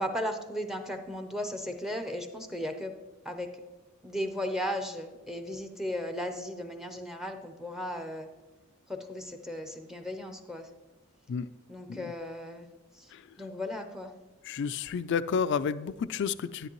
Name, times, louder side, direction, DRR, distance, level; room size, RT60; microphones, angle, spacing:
voice 1, 0.0-2.9 3.2-3.5 4.0-8.3 8.9-10.7 11.7-12.7 12.9-13.1 13.4-14.1, equal, ahead, 7 dB, 0.6 m, -36 dB
voice 2, 14.5-16.7, left 6 dB, 55° left, 15 dB, 0.3 m, -30 dB
10.5 x 10.0 x 3.0 m, 1.1 s
head